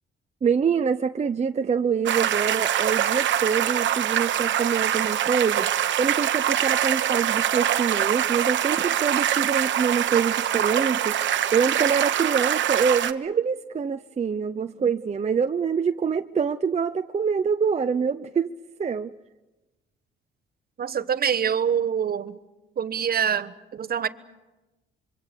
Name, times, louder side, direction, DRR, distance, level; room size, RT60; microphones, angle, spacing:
voice 1, 0.4-5.7 6.0-11.2 11.5-18.5 18.8-19.1, right 6 dB, 35° right, 8 dB, 0.7 m, -25 dB
sound 1, 2.1-13.1, right 11 dB, 70° right, 1.2 m, -24 dB
voice 2, 20.8-22.4 22.8-24.1, right 8 dB, 50° right, 13 dB, 1.2 m, -25 dB
26.0 x 24.0 x 6.9 m, 1.1 s
cardioid pair, 90°, 20 cm